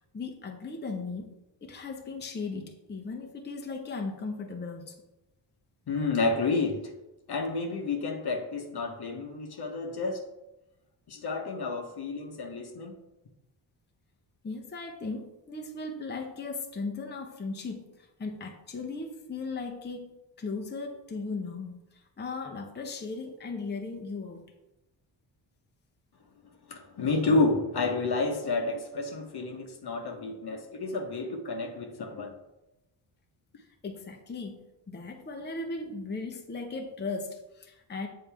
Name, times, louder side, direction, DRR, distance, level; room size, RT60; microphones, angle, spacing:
voice 1, 0.0-1.3 1.6-5.0 14.4-20.1 20.4-24.5 33.6-38.1, left 3 dB, 20° left, 0.8 m, -37 dB
voice 2, 5.9-6.9 7.3-10.3 11.1-13.0 26.7-32.4, left 3 dB, 50° left, 1.1 m, -30 dB
7.3 x 3.8 x 3.4 m
supercardioid pair, 60°, 48 cm